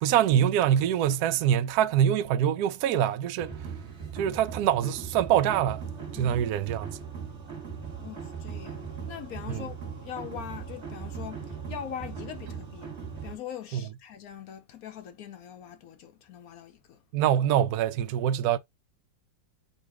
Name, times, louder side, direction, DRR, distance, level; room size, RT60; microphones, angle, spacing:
voice 1, 0.0-3.5 4.1-5.8 6.1-6.9 9.5-9.6 13.7-13.8 17.1-18.6, right 10 dB, 70° right, 0.9 m, -24 dB
sound 1, 3.4-13.4, right 6 dB, 40° right, 1.7 m, -39 dB
voice 2, 6.1-6.6 8.0-8.8 9.1-12.9 13.2-17.0, left 9 dB, 65° left, 1.0 m, -42 dB
4.0 x 2.4 x 4.7 m
omnidirectional pair, 1.9 m